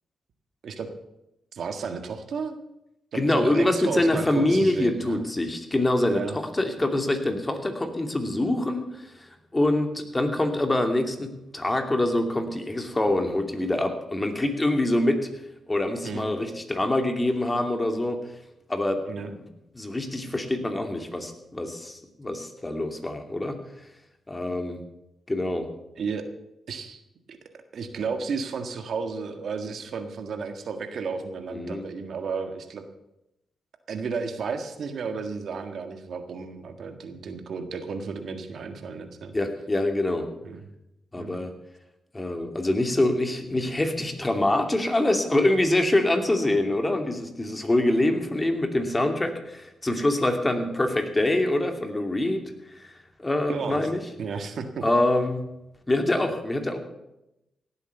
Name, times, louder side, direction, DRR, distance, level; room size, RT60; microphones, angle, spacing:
voice 1, 1.5-2.6 3.1-5.2 6.1-6.4 16.0-16.2 19.1-19.3 26.0-26.2 26.7-27.0 27.3-27.4 27.7-32.8 33.9-39.3 40.4-40.6 41.1-41.4 53.5-53.9 54.2-54.8, right 5 dB, 70° right, 7 dB, 1.7 m, -33 dB
voice 2, 3.1-15.3 15.7-18.2 18.7-19.0 19.7-23.6 24.3-24.8 25.3-25.7 31.5-31.8 39.3-40.3 41.1-41.5 42.1-52.4 52.8-52.9 53.2-54.0 54.8-55.4 55.9-56.8, left 1 dB, 20° left, 5 dB, 2.6 m, -25 dB
17.5 x 8.2 x 6.9 m, 0.88 s
cardioid pair, 60°, 0 cm